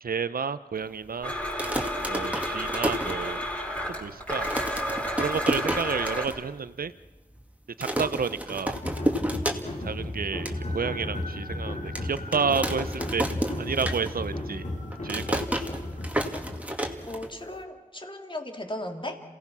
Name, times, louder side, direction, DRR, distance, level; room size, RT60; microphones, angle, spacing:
voice 1, 0.0-1.3 2.1-3.4 3.9-4.5 5.2-6.9 7.8-8.7 9.8-13.3 13.6-14.6 15.0-15.4, right 5 dB, 85° right, 14 dB, 0.6 m, -30 dB
Domestic sounds home sounds, 1.2-6.3, equal, 10° left, 4.8 m, -31 dB
sound 1, 1.4-3.7 4.0-4.1 4.3-6.4 6.7-6.8 7.0-7.4 7.8-10.0 10.2-10.6 11.1-11.2 12.0-14.4 14.7-17.6, right 1 dB, 10° right, 2.3 m, -31 dB
sound 2, 8.7-17.2, left 1 dB, 55° left, 3.2 m, -34 dB
voice 2, 17.1-19.2, left 1 dB, 35° left, 4 dB, 2.8 m, -36 dB
27.5 x 17.5 x 6.1 m, 1.1 s
cardioid pair, 45°, 15 cm